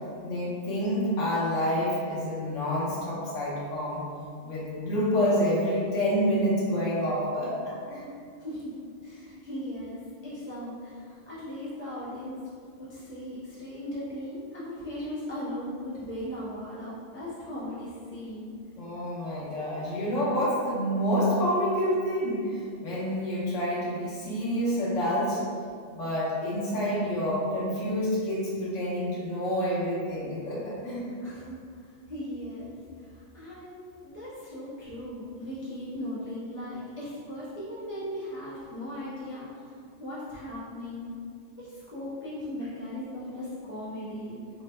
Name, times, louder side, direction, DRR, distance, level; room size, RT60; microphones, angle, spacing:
voice 1, 0.2-4.0 4.4-8.0 18.8-25.4 25.9-31.1, equal, 70° left, -7 dB, 1.2 m, -28 dB
voice 2, 8.4-12.4 12.8-18.6 31.2-41.1 41.6-44.4, left 1 dB, 20° right, -10 dB, 0.3 m, -38 dB
3.3 x 2.1 x 3.2 m, 2.2 s
omnidirectional pair, 1.4 m